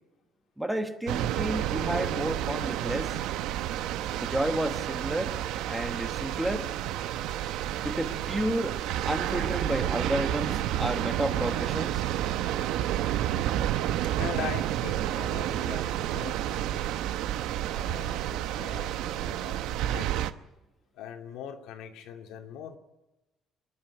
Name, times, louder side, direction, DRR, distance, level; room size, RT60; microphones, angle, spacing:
voice 1, 0.6-3.2 4.1-5.4 5.7-6.7 7.8-8.8 9.1-12.0, right 1 dB, 5° right, 6 dB, 1.1 m, -31 dB
sound 1, 1.1-20.3, right 12 dB, 80° right, 0.8 m, -30 dB
voice 2, 14.1-16.8 17.7-20.1 20.9-22.8, left 9 dB, 85° left, 3 dB, 2.3 m, -41 dB
26.0 x 11.0 x 9.5 m, 1.0 s
cardioid pair, 180°, 0 cm